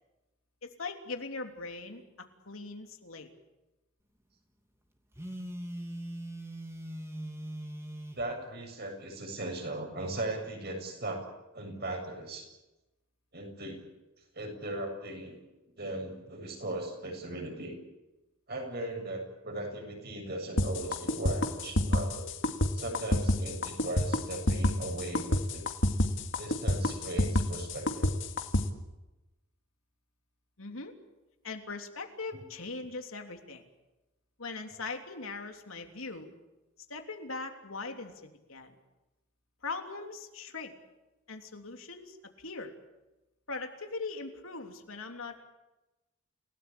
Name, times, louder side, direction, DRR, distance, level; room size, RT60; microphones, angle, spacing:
voice 1, 0.6-2.0 2.5-3.3 30.6-30.9 31.4-33.6 34.4-36.3 36.9-38.1 38.5-38.7 39.6-40.7 41.3-42.7 43.5-45.4, left 3 dB, 75° left, 4 dB, 3.3 m, -40 dB
Telephone, 5.1-8.3, right 1 dB, 15° right, 2.8 m, -40 dB
voice 2, 8.1-11.3 11.5-12.5 13.3-13.8 14.3-15.4 15.8-17.8 18.5-22.3 22.7-25.7 26.4-28.2 32.3-32.4, right 1 dB, 50° right, 3 dB, 7.2 m, -38 dB
sound 1, 20.6-28.6, left 1 dB, 60° left, 2.2 m, -27 dB
29.0 x 18.0 x 8.6 m, 1.0 s
head